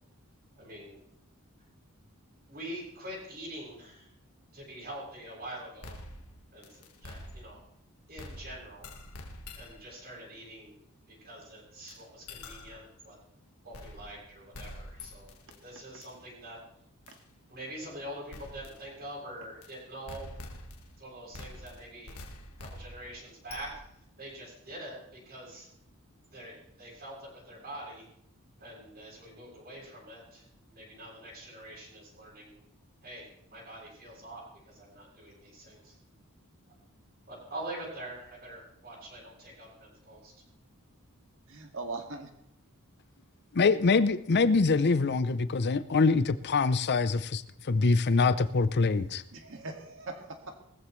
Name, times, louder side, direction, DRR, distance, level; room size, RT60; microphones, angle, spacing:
voice 1, 0.6-1.0 2.5-4.1 4.5-6.0 6.5-7.6 8.1-8.9 9.5-10.8 11.1-13.2 13.6-16.6 17.5-20.4 21.0-22.1 22.6-23.7 24.2-25.7 26.3-28.0 28.6-32.6 33.0-36.0 37.3-40.3, right 1 dB, 45° right, -5 dB, 7.6 m, -45 dB
sound 1, 5.8-7.8 8.2-9.9 11.9-12.0 12.3-12.9 13.7-14.3 14.5-15.6 16.0-16.1 17.1-17.2 18.3-18.8 19.6-19.7 20.1-21.0 21.3-24.0, left 1 dB, 80° left, 1.6 m, -46 dB
voice 2, 41.5-42.3 49.3-50.6, right 3 dB, 65° right, 4 dB, 2.1 m, -40 dB
voice 3, 43.5-49.2, left 4 dB, 50° left, 13 dB, 0.6 m, -24 dB
19.0 x 14.5 x 3.2 m, 0.73 s
head